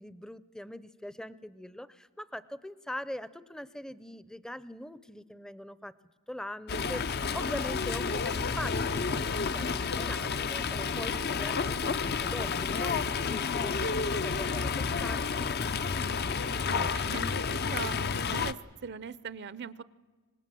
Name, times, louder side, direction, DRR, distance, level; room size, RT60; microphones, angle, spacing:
voice 1, 0.0-5.9 6.3-15.5, left 1 dB, 5° left, 16 dB, 0.6 m, -42 dB
Fowl, 6.7-18.5, left 5 dB, 50° left, 0.6 m, -30 dB
voice 2, 16.6-18.0 18.3-18.6 18.8-19.8, right 6 dB, 50° right, 18 dB, 0.6 m, -40 dB
25.5 x 20.0 x 7.6 m, 1.4 s
head